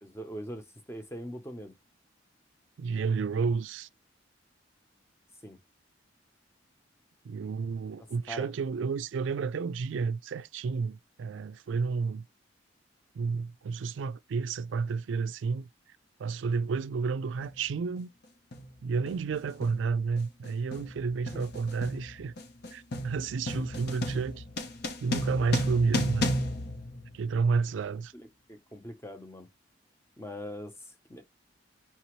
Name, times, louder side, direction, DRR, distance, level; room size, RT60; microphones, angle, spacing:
voice 1, 0.0-1.7 5.4-5.6 8.3-8.5 21.3-21.4 28.1-29.5 30.2-31.2, equal, 15° left, 0.8 m, -42 dB
voice 2, 2.8-3.9 7.2-12.3 13.1-15.7 16.2-18.1 18.8-22.3 22.7-24.4 25.0-26.3 27.1-28.1, right 5 dB, 70° right, 0.3 m, -31 dB
sound 1, 17.4-17.6 18.5-18.8 19.1-27.6, left 1 dB, 55° left, 0.8 m, -34 dB
5.8 x 2.7 x 3.0 m
head